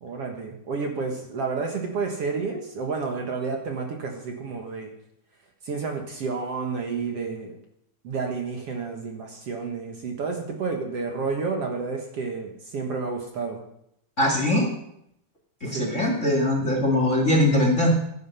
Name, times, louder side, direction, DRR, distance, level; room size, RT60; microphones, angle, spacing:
voice 1, 0.0-4.9 5.6-7.6 8.0-13.6 15.7-16.3, right 4 dB, 55° right, 2 dB, 2.3 m, -30 dB
voice 2, 14.2-14.7 15.6-17.9, left 1 dB, 25° left, 1 dB, 2.2 m, -21 dB
15.5 x 9.5 x 5.8 m, 0.74 s
omnidirectional pair, 3.7 m